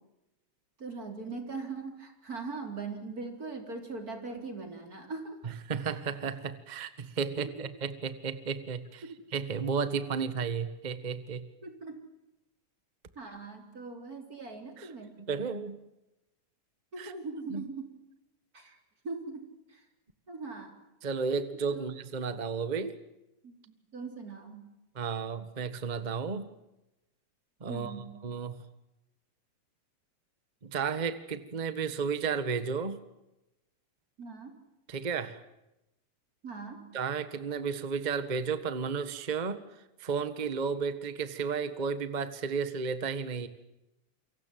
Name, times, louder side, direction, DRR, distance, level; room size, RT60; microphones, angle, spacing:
voice 1, 0.8-5.4 7.3-7.4 9.0-9.2 11.6-12.0 13.2-15.2 16.9-17.9 18.5-18.8 19.0-19.8 20.3-20.7 21.7-21.9 23.4-23.5 23.9-24.7 27.7-28.2 34.2-34.5 36.4-36.9, right 4 dB, 25° right, 5 dB, 4.1 m, -40 dB
voice 2, 5.4-9.0 9.3-11.4 14.8-14.9 15.3-15.8 17.0-17.1 17.5-17.6 21.0-23.0 24.9-26.5 27.6-27.9 28.2-28.6 30.6-33.0 34.9-35.4 36.9-39.6 40.0-43.5, right 5 dB, 50° right, 12 dB, 0.5 m, -33 dB
28.5 x 24.0 x 7.7 m, 0.93 s
omnidirectional pair, 3.8 m